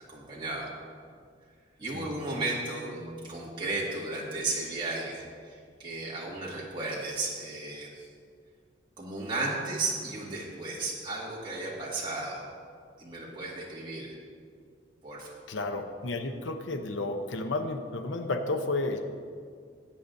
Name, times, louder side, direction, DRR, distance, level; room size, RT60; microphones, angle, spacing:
voice 1, 0.1-0.7 1.8-8.1 9.0-12.4 13.0-14.1 15.0-15.3, right 2 dB, 25° right, -6 dB, 2.0 m, -34 dB
voice 2, 15.5-19.0, left 2 dB, 85° left, 6 dB, 0.8 m, -32 dB
18.0 x 8.5 x 2.7 m, 2.1 s
head